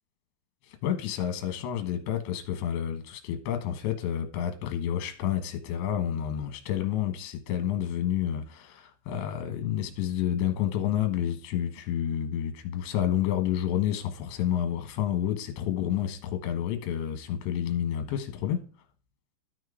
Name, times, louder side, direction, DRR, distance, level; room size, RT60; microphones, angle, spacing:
voice 1, 0.8-18.6, left 10 dB, 75° left, 3.2 m, -29 dB
13.0 x 4.6 x 4.9 m
omnidirectional pair, 5.7 m